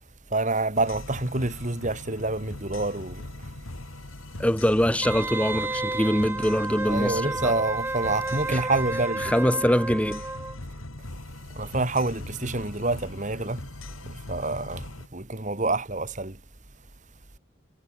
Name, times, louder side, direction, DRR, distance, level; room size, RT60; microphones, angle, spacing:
voice 1, 0.3-3.3 6.8-9.3 11.5-13.6 14.0-16.4, right 2 dB, 35° right, 2.2 m, -27 dB
sound 1, 0.7-15.1, left 1 dB, 80° left, 2.4 m, -40 dB
voice 2, 4.4-7.5 8.5-8.6 9.2-10.3, equal, 5° left, 2.1 m, -23 dB
Wind instrument woodwind instrument, 5.0-10.6 10.9-11.0, right 2 dB, 10° right, 0.4 m, -31 dB
head